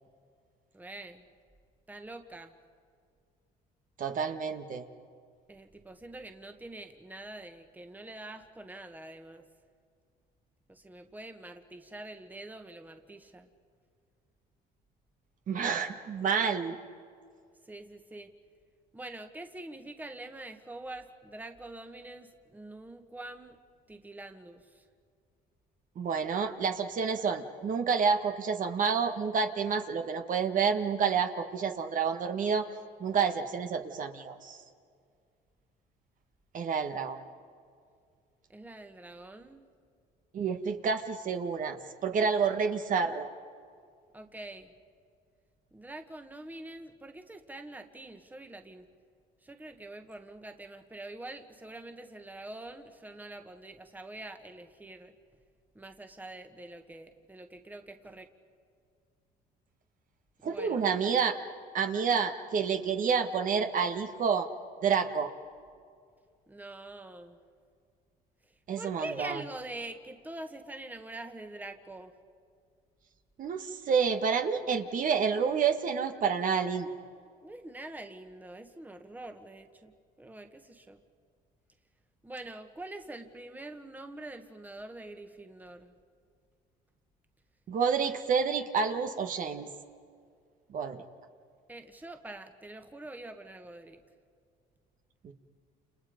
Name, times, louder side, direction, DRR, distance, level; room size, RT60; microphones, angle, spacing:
voice 1, 0.7-1.3 1.9-2.5 5.5-9.5 10.7-13.5 17.7-18.3 18.9-23.6 23.9-24.8 38.5-39.6 44.1-44.7 45.7-48.9 49.4-55.1 55.7-58.3 60.4-60.8 66.5-67.4 68.8-72.1 77.4-79.9 80.2-81.0 82.2-85.9 91.7-94.0, right 2 dB, 10° right, 6 dB, 1.6 m, -45 dB
voice 2, 4.0-4.8 15.5-16.8 26.0-32.7 33.0-34.6 36.5-37.2 40.3-43.3 60.4-61.3 61.7-64.5 64.8-65.3 68.7-69.4 73.4-76.9 87.7-89.7 90.7-91.0 95.2-95.3, right 6 dB, 50° right, 6 dB, 1.6 m, -29 dB
30.0 x 28.5 x 5.2 m, 2.2 s
cardioid pair, 110°, 17 cm